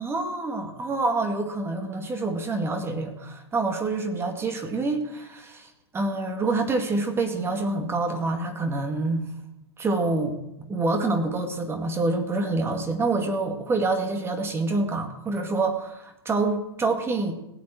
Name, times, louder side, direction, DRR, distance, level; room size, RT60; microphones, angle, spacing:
voice 1, 0.0-9.2 9.8-17.3, right 3 dB, 15° right, 5 dB, 2.2 m, -27 dB
17.5 x 7.5 x 9.0 m, 0.87 s
hypercardioid pair, 120°, 14 cm